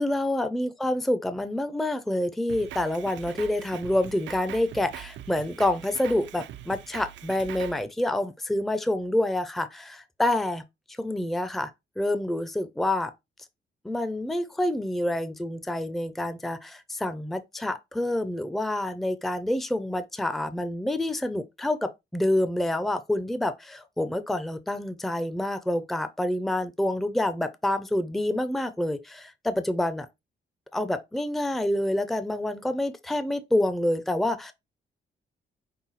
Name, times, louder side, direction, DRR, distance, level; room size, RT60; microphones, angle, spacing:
voice 1, 0.0-10.6 11.0-11.7 12.0-13.1 13.8-30.1 30.7-34.5, left 1 dB, ahead, 0.5 m, -27 dB
Drum kit, 2.5-7.8, right 12 dB, 75° right, 0.4 m, -42 dB
5.6 x 2.3 x 3.9 m
cardioid pair, 100°, 19 cm